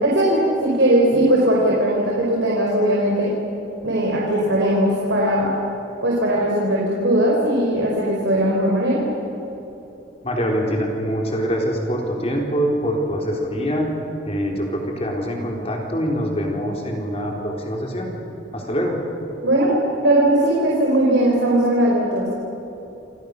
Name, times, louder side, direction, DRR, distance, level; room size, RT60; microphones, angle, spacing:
voice 1, 0.0-3.3 3.8-5.5 6.0-9.0 19.4-19.7 20.0-22.3, right 1 dB, 75° right, -3 dB, 4.9 m, -19 dB
voice 2, 10.2-13.9 14.3-18.1 18.5-19.0, equal, 30° left, 0 dB, 4.1 m, -24 dB
29.0 x 27.0 x 6.8 m, 3.0 s
head